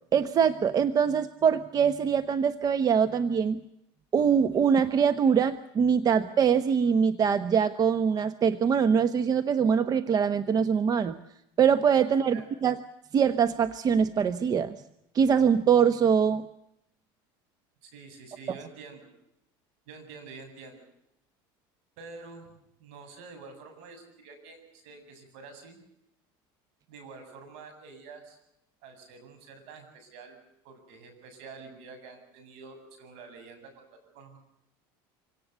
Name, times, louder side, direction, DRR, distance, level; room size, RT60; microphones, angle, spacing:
voice 1, 0.1-3.6 4.1-11.2 11.6-12.8 13.1-14.8 15.1-16.5, right 7 dB, 35° right, 12 dB, 1.0 m, -23 dB
voice 2, 17.8-19.1 19.9-20.8 22.0-25.8 26.9-28.4 28.8-30.4 30.6-34.4, right 4 dB, 70° right, 7 dB, 7.8 m, -48 dB
26.0 x 17.5 x 8.1 m, 0.80 s
supercardioid pair, 115°, 12 cm